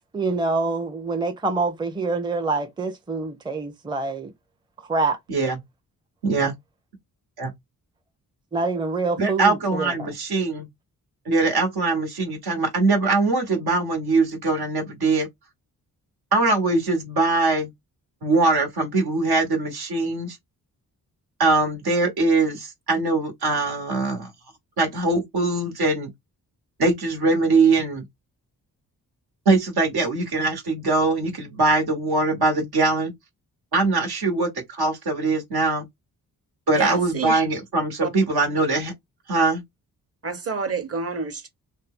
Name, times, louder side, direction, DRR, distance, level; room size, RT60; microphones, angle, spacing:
voice 1, 0.1-4.3 4.9-5.2 8.5-10.1, right 3 dB, 10° right, 0.6 m, -26 dB
voice 2, 5.3-5.6 6.2-6.5 7.4-7.5 9.2-10.7 11.2-15.3 16.3-17.7 18.2-20.4 21.4-24.3 24.8-26.1 26.8-28.0 29.4-33.1 33.7-35.8 36.7-38.9 39.3-39.6, right 3 dB, 75° right, 1.2 m, -22 dB
voice 3, 36.7-37.3 38.0-38.1 40.2-41.5, right 5 dB, 35° right, 1.1 m, -28 dB
2.7 x 2.2 x 3.6 m
supercardioid pair, 50°, 39 cm